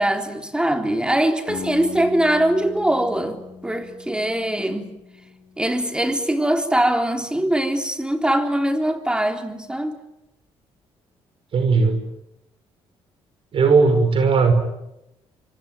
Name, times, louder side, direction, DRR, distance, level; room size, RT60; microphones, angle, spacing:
voice 1, 0.0-4.9 5.6-10.0, right 1 dB, 10° right, 3.8 m, -22 dB
sound 1, 1.5-7.2, left 7 dB, 60° left, 3.4 m, -40 dB
voice 2, 11.5-12.0 13.5-14.5, right 4 dB, 55° right, 5.2 m, -17 dB
25.0 x 25.0 x 9.1 m
cardioid pair, 90°, 11 cm